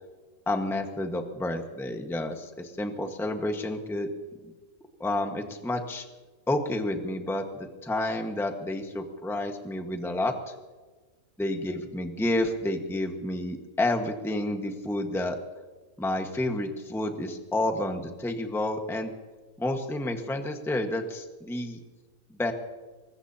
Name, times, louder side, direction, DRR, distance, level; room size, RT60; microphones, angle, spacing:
voice 1, 0.5-4.1 5.0-6.0 6.5-7.4 7.8-10.3 11.4-15.4 16.0-19.1 19.6-21.8 22.4-22.5, left 1 dB, ahead, 4 dB, 1.3 m, -30 dB
24.0 x 20.5 x 2.8 m, 1.3 s
omnidirectional pair, 1.6 m